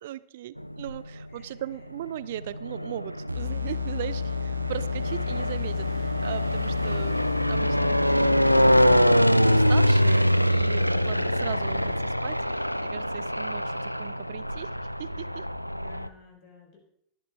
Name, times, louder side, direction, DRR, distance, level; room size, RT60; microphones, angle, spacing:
voice 1, 0.0-14.7 15.0-15.4, right 13 dB, 55° right, 18 dB, 0.5 m, -38 dB
sound 1, 0.6-1.3 2.1-16.1, equal, 90° left, 0.3 m, -24 dB
sound 2, 3.3-9.3, left 6 dB, 85° right, 1.0 m, -31 dB
sound 3, 4.9-12.0, left 4 dB, 20° left, 3.4 m, -50 dB
voice 2, 15.8-16.8, left 7 dB, 40° left, 2 dB, 5.3 m, -51 dB
20.0 x 11.0 x 2.5 m, 0.71 s
figure-of-eight pair, 90°, 0 cm